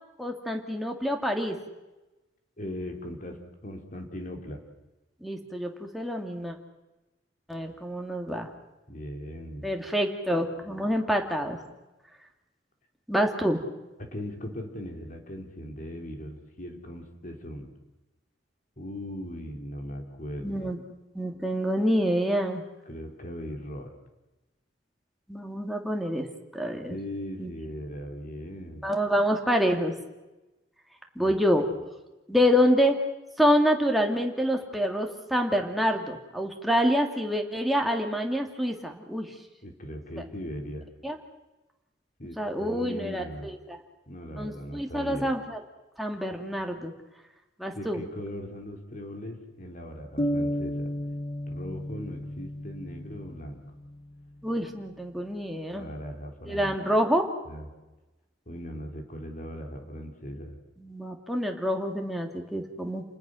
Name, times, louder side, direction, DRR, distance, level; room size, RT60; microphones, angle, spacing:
voice 1, 0.2-1.6 5.2-6.6 7.5-8.5 9.6-11.6 13.1-13.6 20.4-20.8 21.1-22.6 25.3-26.3 26.5-27.0 27.4-27.5 28.8-29.9 31.2-31.7 32.3-32.9 33.4-39.3 41.0-41.2 42.4-43.8 44.4-45.6 46.0-46.9 47.6-48.0 54.4-55.9 56.5-57.2 60.8-63.0, equal, ahead, 2 dB, 2.6 m, -27 dB
voice 2, 2.6-3.4 3.6-4.6 8.9-9.7 14.0-17.7 18.8-20.7 22.9-23.9 26.9-28.9 31.2-31.3 39.6-40.9 42.2-43.5 44.1-45.3 47.7-50.9 51.4-53.6 55.7-56.8 57.5-57.7 58.5-60.6, equal, 45° left, 3 dB, 3.9 m, -39 dB
sound 1, 50.2-53.9, equal, 25° left, 1.1 m, -32 dB
29.5 x 20.0 x 6.5 m, 1.1 s
head